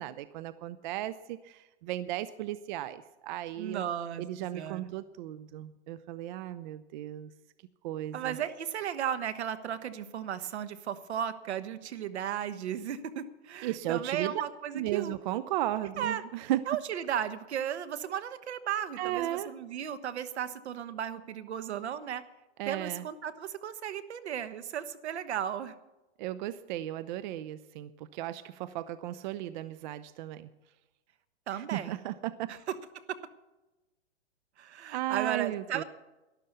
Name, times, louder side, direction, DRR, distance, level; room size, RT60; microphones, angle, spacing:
voice 1, 0.0-3.8 4.2-7.3 7.8-8.4 13.6-14.3 14.7-16.6 19.0-19.5 22.6-23.0 26.2-30.5 31.5-32.5 34.9-35.8, right 14 dB, 45° right, 16 dB, 0.6 m, -35 dB
voice 2, 3.6-4.3 4.5-4.9 8.1-15.1 16.0-16.2 16.7-22.2 22.7-25.7 31.5-32.0 32.5-32.6 33.1-33.2 34.6-35.8, right 9 dB, 70° right, 12 dB, 1.3 m, -35 dB
12.5 x 11.5 x 6.8 m, 1.1 s
hypercardioid pair, 130°, 34 cm